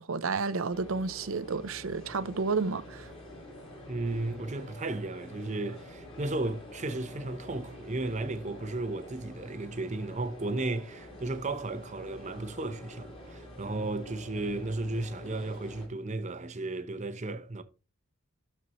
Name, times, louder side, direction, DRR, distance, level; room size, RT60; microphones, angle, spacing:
voice 1, 0.0-3.1, right 4 dB, 70° right, 0.7 m, -31 dB
sound 1, 0.7-15.9, left 1 dB, 25° left, 3.4 m, -47 dB
voice 2, 3.9-17.6, right 2 dB, 35° right, 0.8 m, -34 dB
12.5 x 4.4 x 3.0 m
head